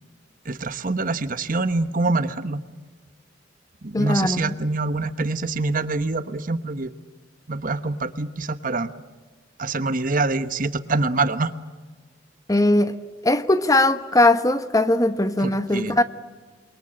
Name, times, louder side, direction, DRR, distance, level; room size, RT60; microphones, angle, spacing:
voice 1, 0.4-2.6 3.8-6.9 7.5-8.9 9.6-11.5 15.4-16.0, right 3 dB, 45° right, 1.2 m, -25 dB
voice 2, 3.9-4.5 12.5-13.0 13.2-16.0, left 2 dB, 20° left, 1.1 m, -19 dB
28.5 x 23.0 x 8.9 m
head